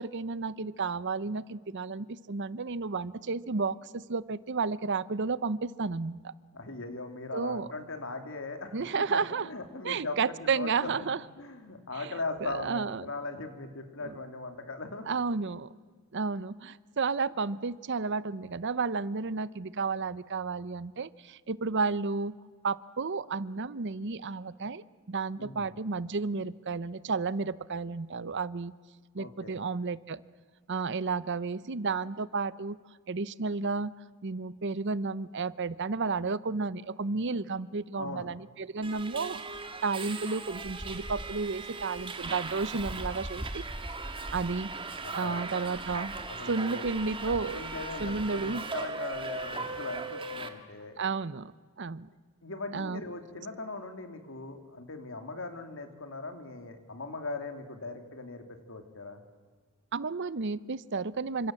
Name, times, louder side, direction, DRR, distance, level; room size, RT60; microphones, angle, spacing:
voice 1, 0.0-6.3 7.3-7.7 8.7-9.5 9.8-11.2 12.0-12.1 12.4-13.0 14.0-14.1 15.1-15.7 16.1-22.3 22.6-28.7 29.1-30.2 30.7-32.8 33.1-33.9 34.2-39.4 39.8-43.6 44.3-44.7 45.1-46.1 46.5-47.6 48.0-48.6 51.0-51.5 51.8-52.1 52.7-53.0 59.9-61.5, right 4 dB, 55° right, 18 dB, 0.7 m, -32 dB
voice 2, 6.5-10.9 11.4-15.1 25.4-25.7 29.2-29.6 38.0-38.2 45.0-45.4 46.3-46.9 47.3-51.0 52.4-59.2, left 3 dB, 60° left, 7 dB, 3.0 m, -39 dB
Subway metro underground, 38.8-50.5, right 3 dB, 25° right, 1.8 m, -38 dB
29.0 x 26.0 x 7.7 m, 1.5 s
head